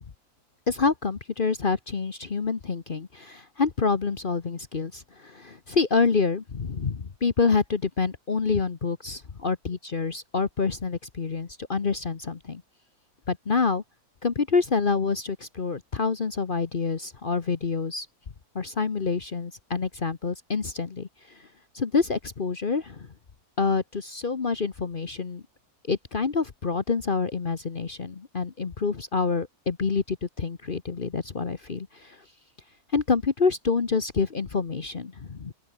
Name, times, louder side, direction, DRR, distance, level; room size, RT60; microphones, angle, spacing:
voice 1, 0.7-12.6 13.3-13.8 14.2-18.1 18.5-21.5 21.7-23.1 23.6-25.4 25.9-32.2 32.9-35.5, left 4 dB, 40° left, 1.2 m, -27 dB
open air
omnidirectional pair, 1.6 m